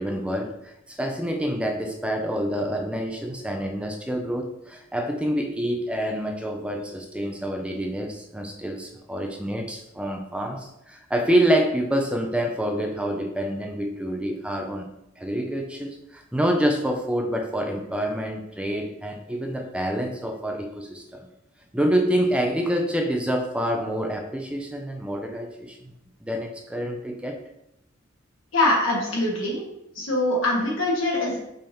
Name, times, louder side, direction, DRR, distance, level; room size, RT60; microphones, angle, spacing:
voice 1, 0.0-14.9 15.2-21.3 21.7-25.9 26.2-27.4, equal, 5° right, 2 dB, 0.4 m, -27 dB
voice 2, 28.5-29.6 29.9-31.4, left 1 dB, 75° left, -3 dB, 1.6 m, -23 dB
5.5 x 2.7 x 3.5 m, 0.83 s
head